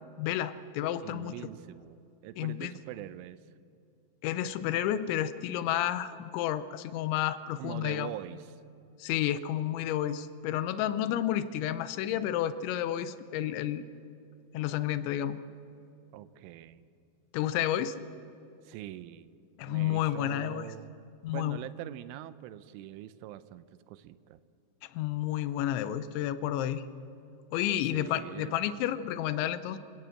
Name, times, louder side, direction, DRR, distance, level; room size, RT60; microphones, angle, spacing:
voice 1, 0.2-1.3 2.4-2.7 4.2-8.1 9.0-13.9 14.5-15.4 17.3-18.0 19.6-20.7 21.2-21.6 24.9-26.8 27.5-29.8, left 12 dB, 80° left, 14 dB, 3.0 m, -31 dB
voice 2, 1.0-3.4 7.6-8.6 16.1-16.9 18.6-19.4 19.7-21.0 21.3-24.4 27.9-28.6, right 13 dB, 90° right, 15 dB, 3.2 m, -43 dB
25.5 x 17.5 x 7.8 m, 2.7 s
omnidirectional pair, 5.5 m